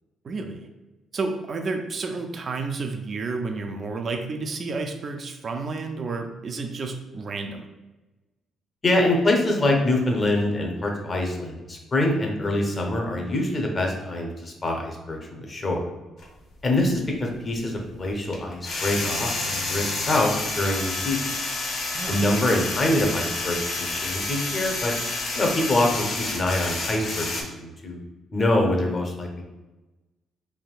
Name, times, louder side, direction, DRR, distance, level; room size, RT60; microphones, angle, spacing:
voice 1, 0.2-0.7 1.1-7.7 21.9-22.3, right 3 dB, 45° right, 4 dB, 0.3 m, -31 dB
voice 2, 8.8-15.8 16.6-21.3 22.1-24.9 25.3-28.0 28.3-29.4, left 1 dB, 35° left, 1 dB, 0.7 m, -25 dB
sound 1, 16.2-16.3 18.3-27.4, left 3 dB, 70° left, 0.7 m, -29 dB
3.4 x 2.6 x 2.3 m, 1.1 s
cardioid pair, 90°, 0 cm